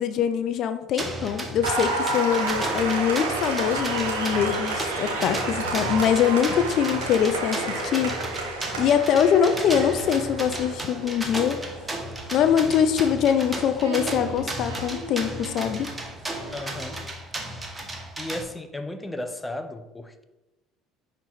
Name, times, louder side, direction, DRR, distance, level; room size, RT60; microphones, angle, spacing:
voice 1, 0.0-8.1 8.8-11.6 12.3-15.9, left 8 dB, 60° left, 9 dB, 0.5 m, -23 dB
sound 1, 1.0-18.4, right 1 dB, 20° right, 1.1 m, -35 dB
Applause, 1.6-17.0, right 3 dB, 85° right, 1.5 m, -31 dB
voice 2, 16.5-17.1 18.2-20.2, left 1 dB, 10° left, 8 dB, 0.7 m, -35 dB
5.6 x 4.4 x 4.0 m, 1.0 s
supercardioid pair, 80°, 0 cm